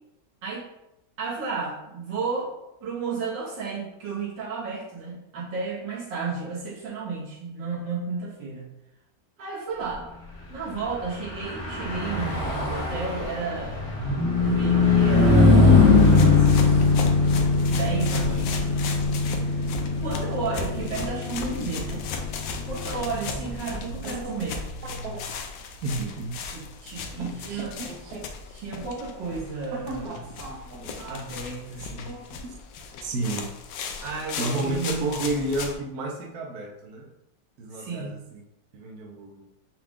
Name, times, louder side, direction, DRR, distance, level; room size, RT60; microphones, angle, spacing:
voice 1, 1.2-2.5 2.8-8.7 9.4-10.1 10.5-13.8 14.4-16.8 17.7-18.8 19.4-19.6 20.0-22.1 22.6-24.6 26.5-27.9 28.5-30.2 31.0-32.1 34.0-35.1 37.7-38.1, right 4 dB, 90° right, -5 dB, 2.0 m, -32 dB
Car passing by / Truck, 11.2-24.9, left 3 dB, 70° left, 1.6 m, -22 dB
sound 1, 15.9-35.8, left 5 dB, 90° left, 1.3 m, -37 dB
voice 2, 25.8-26.8 27.2-28.2 29.9-31.0 32.1-32.5 33.0-33.5 34.4-37.1 37.6-38.4 38.7-39.5, right 2 dB, 65° right, 0 dB, 1.1 m, -32 dB
5.7 x 2.4 x 3.6 m, 0.88 s
omnidirectional pair, 1.9 m